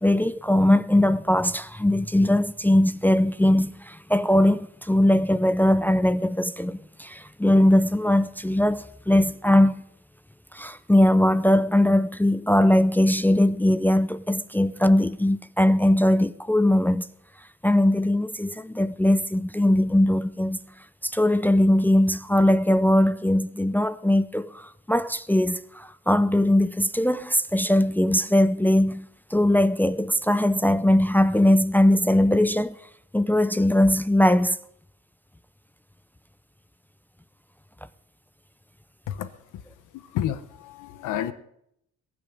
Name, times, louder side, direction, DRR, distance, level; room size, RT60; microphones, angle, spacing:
voice 1, 0.0-9.8 10.5-17.1 17.6-20.6 21.0-32.8 33.1-34.6, left 1 dB, 5° left, 0.5 m, -20 dB
voice 2, 40.1-41.3, left 11 dB, 85° left, 1.1 m, -29 dB
21.5 x 7.6 x 5.3 m
cardioid pair, 90°, 30 cm